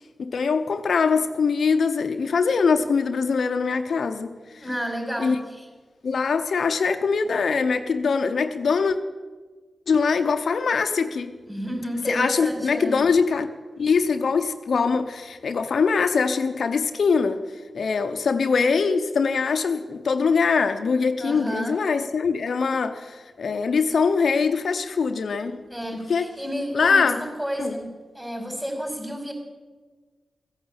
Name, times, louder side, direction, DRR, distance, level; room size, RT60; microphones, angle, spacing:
voice 1, 0.2-4.6 5.2-5.4 6.0-9.0 9.9-11.3 12.1-13.5 13.8-17.4 17.7-25.6 26.1-26.3 26.7-27.3 27.6-27.8, left 5 dB, 80° left, 0.8 m, -22 dB
voice 2, 4.6-5.7 11.5-13.0 21.2-21.8 25.7-27.9 28.1-29.3, equal, 10° right, 4.8 m, -31 dB
16.0 x 8.9 x 8.7 m
cardioid pair, 45°, 0 cm